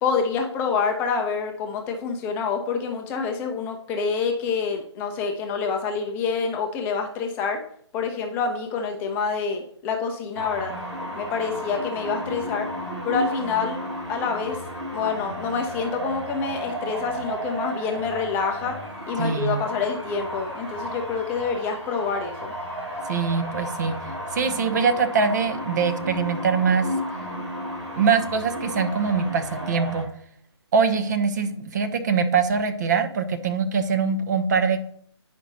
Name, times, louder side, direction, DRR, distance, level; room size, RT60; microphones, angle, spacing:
voice 1, 0.0-7.6 7.9-10.7 11.1-12.7 13.0-13.8 14.1-14.6 14.9-18.8 19.1-22.5, left 5 dB, 15° left, 3 dB, 0.6 m, -27 dB
sound 1, 10.3-30.0, equal, 75° right, 2.8 m, -33 dB
voice 2, 19.2-19.6 23.1-24.0 24.3-26.9 28.0-30.1 30.7-34.8, right 5 dB, 40° right, 7 dB, 0.9 m, -23 dB
9.3 x 5.3 x 4.0 m, 0.63 s
figure-of-eight pair, 140°, 15 cm